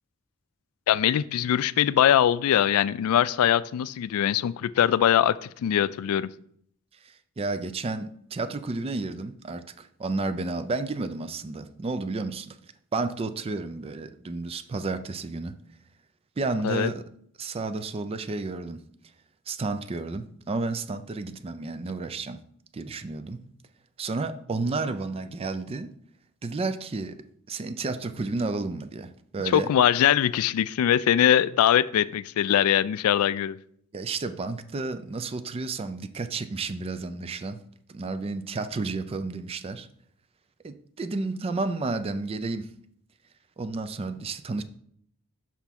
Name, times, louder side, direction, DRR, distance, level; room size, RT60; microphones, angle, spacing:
voice 1, 0.9-6.3 16.6-16.9 29.5-33.6, left 10 dB, 85° left, 17 dB, 0.3 m, -22 dB
voice 2, 7.0-12.6 12.9-15.6 16.4-17.0 17.4-18.8 19.5-22.4 22.7-23.4 24.0-25.9 26.4-29.7 33.9-37.6 37.9-39.9 40.6-42.7 43.6-44.6, right 3 dB, 25° right, 10 dB, 0.4 m, -31 dB
5.9 x 5.8 x 3.5 m, 0.66 s
head